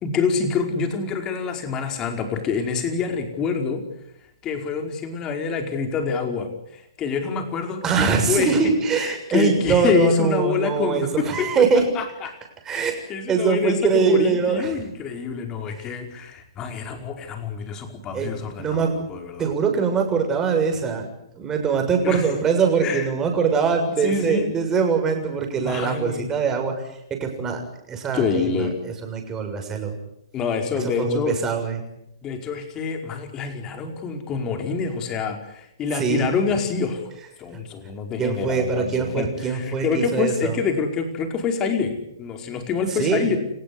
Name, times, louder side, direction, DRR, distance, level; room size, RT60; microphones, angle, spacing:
voice 1, 0.0-3.8 4.4-12.3 12.7-19.5 22.0-22.3 22.8-23.1 24.0-24.5 25.6-26.3 28.1-28.8 30.3-31.4 32.2-37.0 37.4-43.4, left 5 dB, 25° left, 5 dB, 4.9 m, -26 dB
voice 2, 7.8-11.9 12.6-13.0 13.3-14.8 18.1-18.9 19.4-21.1 21.4-26.7 27.1-27.6 27.9-30.0 30.8-31.8 36.0-36.3 37.5-37.6 38.2-40.6 42.9-43.4, right 5 dB, 20° right, 4 dB, 6.9 m, -22 dB
30.0 x 16.0 x 9.7 m, 0.79 s
hypercardioid pair, 130°, 2 cm